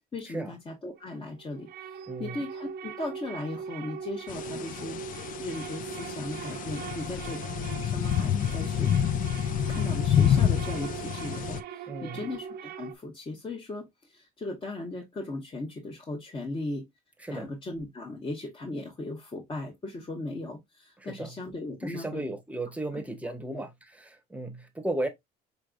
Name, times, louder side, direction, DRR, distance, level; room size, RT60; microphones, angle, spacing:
voice 1, 0.1-7.4 7.8-9.0 9.6-16.9 17.3-22.2 23.2-23.7, left 2 dB, 30° left, 1.3 m, -37 dB
sound 1, 1.0-12.9, right 8 dB, 70° right, 0.7 m, -40 dB
voice 2, 2.1-2.4 11.9-12.2 17.2-17.5 21.0-21.3 21.8-23.7 24.0-25.1, right 2 dB, 10° right, 1.0 m, -35 dB
sound 2, 4.3-11.6, left 9 dB, 55° left, 0.5 m, -28 dB
5.1 x 3.2 x 2.4 m
cardioid pair, 110°, 17 cm